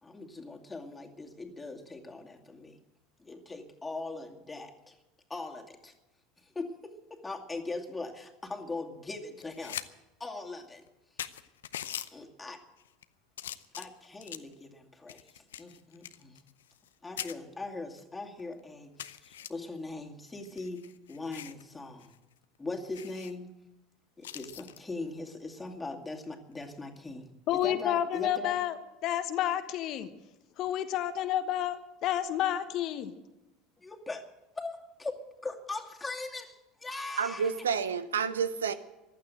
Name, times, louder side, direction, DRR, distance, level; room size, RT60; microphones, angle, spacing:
voice 1, 0.0-2.8 3.2-4.9 5.3-5.9 6.4-9.8 10.2-10.8 12.1-12.6 13.8-16.4 17.0-22.1 22.6-23.5 24.2-28.6 33.8-34.2 34.6-37.5, left 3 dB, 15° left, 2.4 m, -40 dB
sound 1, 9.4-9.9 10.2-10.3 10.9-11.0 11.2-12.1 12.8-13.0 13.4-14.5 15.1-16.9 17.2-17.3 18.0-18.1 18.4-18.5 19.0-19.5 20.3-21.6 22.0-22.2 22.4-22.5 22.9-23.3 24.2-24.8 26.5-26.8, left 11 dB, 80° left, 0.6 m, -42 dB
voice 2, 27.5-28.8 29.0-30.1 30.6-33.1, left 11 dB, 50° left, 1.2 m, -30 dB
voice 3, 37.2-38.7, right 6 dB, 80° right, 0.8 m, -29 dB
15.0 x 12.0 x 7.8 m
hypercardioid pair, 75°, 0 cm